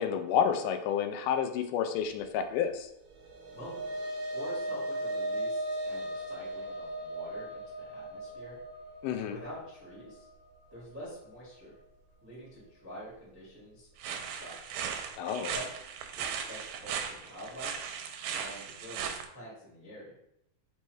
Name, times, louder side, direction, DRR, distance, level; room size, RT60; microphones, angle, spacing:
voice 1, 0.0-2.9 9.0-9.4 15.2-15.5, left 8 dB, 85° left, 7 dB, 2.1 m, -30 dB
sound 1, 3.1-11.6, right 1 dB, 70° right, 1.8 m, -37 dB
voice 2, 4.3-8.6 9.1-10.3 10.7-11.7 12.2-14.8 15.5-15.8 16.1-17.7 18.4-20.1, equal, 10° right, -6 dB, 0.5 m, -47 dB
sound 2, 14.0-19.3, right 7 dB, 85° right, 2.1 m, -37 dB
5.3 x 2.1 x 4.7 m, 0.77 s
omnidirectional pair, 3.6 m